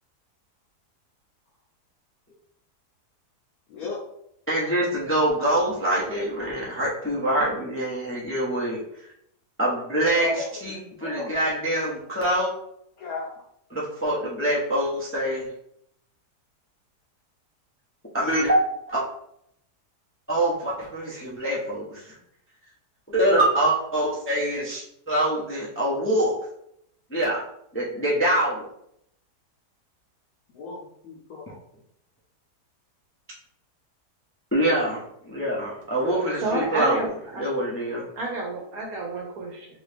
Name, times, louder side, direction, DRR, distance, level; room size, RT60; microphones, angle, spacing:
voice 1, 3.7-4.0 10.1-10.5 11.0-11.3 13.0-13.3 30.6-31.5, left 3 dB, 70° left, -3 dB, 1.1 m, -34 dB
voice 2, 4.5-8.8 9.6-12.5 13.7-15.5 18.1-18.6 18.9-19.0 20.3-22.2 23.1-26.3 27.1-27.4 27.7-28.7 34.5-37.0 37.4-38.0, right 1 dB, 20° left, -5 dB, 0.3 m, -25 dB
voice 3, 36.0-37.4 38.2-39.7, right 2 dB, 70° right, 0 dB, 1.1 m, -30 dB
3.0 x 2.8 x 3.4 m, 0.73 s
omnidirectional pair, 1.7 m